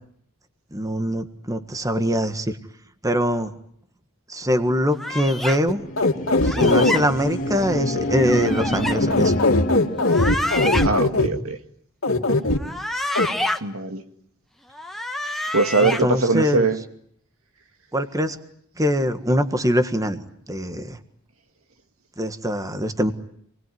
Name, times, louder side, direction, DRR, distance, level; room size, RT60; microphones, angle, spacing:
voice 1, 0.7-2.6 3.0-3.5 4.3-5.8 6.4-9.3 15.8-16.7 17.9-18.4 18.8-21.0 22.2-23.1, equal, 15° right, 9 dB, 1.6 m, -23 dB
sound 1, 5.0-5.6 6.4-7.0 8.1-9.0 10.0-10.9 12.5-13.6 14.7-16.0, left 1 dB, ahead, 1.4 m, -27 dB
sound 2, 5.6-10.2, left 1 dB, 40° left, 2.4 m, -27 dB
sound 3, 5.7-6.9 9.0-11.3 12.0-12.6 13.2-13.3, left 2 dB, 75° left, 2.5 m, -19 dB
voice 2, 10.8-11.6 13.6-14.0 15.5-16.8, right 3 dB, 85° right, 7 dB, 2.2 m, -21 dB
27.5 x 21.0 x 9.4 m, 0.68 s
head